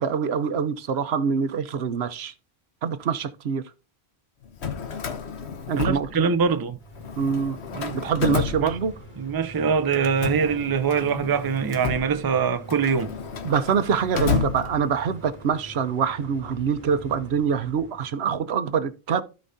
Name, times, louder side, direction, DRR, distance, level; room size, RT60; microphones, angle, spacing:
voice 1, 0.0-2.3 2.8-3.6 5.7-6.3 7.2-7.6 7.9-8.9 13.4-19.2, right 6 dB, 75° right, 1.0 m, -25 dB
Drawer open or close, 4.4-6.6 6.9-9.3 9.9-15.2, left 6 dB, 85° left, 1.3 m, -31 dB
voice 2, 5.8-6.8 7.7-8.3 8.6-8.7 9.2-13.1, right 6 dB, 25° right, 0.5 m, -23 dB
sound 1, 6.8-18.1, equal, 10° left, 5.9 m, -45 dB
16.0 x 5.3 x 2.6 m
omnidirectional pair, 1.1 m